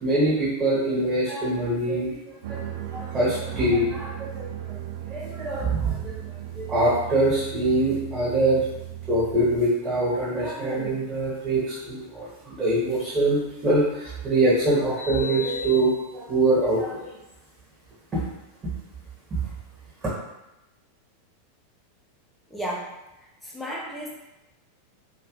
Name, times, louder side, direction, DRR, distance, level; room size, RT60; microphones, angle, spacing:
voice 1, 0.0-2.6 2.9-4.5 5.1-6.1 6.5-8.6 9.1-17.1 18.1-18.2 19.3-19.4, right 1 dB, 25° right, -8 dB, 1.3 m, -24 dB
sound 1, 2.4-9.6, right 12 dB, 60° right, 0.3 m, -36 dB
voice 2, 22.5-22.9 23.4-24.1, right 1 dB, 5° left, -4 dB, 0.8 m, -33 dB
2.7 x 2.5 x 3.1 m, 0.95 s
figure-of-eight pair, 90°, 0 cm